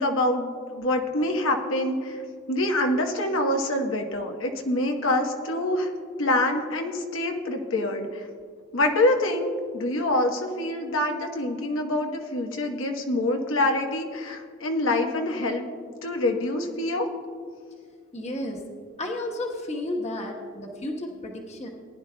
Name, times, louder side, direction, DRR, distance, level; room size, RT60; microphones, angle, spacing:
voice 1, 0.0-2.2 2.5-5.9 6.2-8.2 8.7-15.6 16.0-17.1, left 1 dB, 85° left, 3 dB, 1.1 m, -25 dB
voice 2, 18.1-18.6 19.0-21.7, left 1 dB, 35° left, 1 dB, 1.1 m, -32 dB
19.0 x 10.5 x 2.3 m, 2.1 s
head